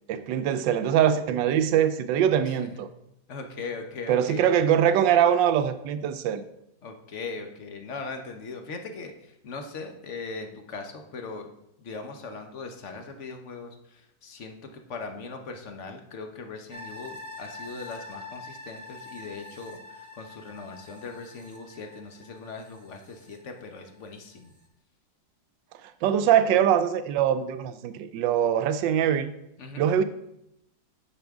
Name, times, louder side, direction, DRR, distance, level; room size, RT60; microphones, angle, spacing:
voice 1, 0.1-2.9 4.1-6.4 25.8-29.3 29.8-30.0, right 9 dB, 90° right, 11 dB, 1.3 m, -23 dB
voice 2, 3.3-4.5 6.8-11.5 11.8-24.5 29.6-29.9, left 4 dB, 50° left, 5 dB, 1.0 m, -39 dB
sound 1, 16.7-24.0 24.4-24.5, left 2 dB, 15° left, 0.8 m, -45 dB
9.8 x 6.1 x 3.5 m, 0.81 s
omnidirectional pair, 1.9 m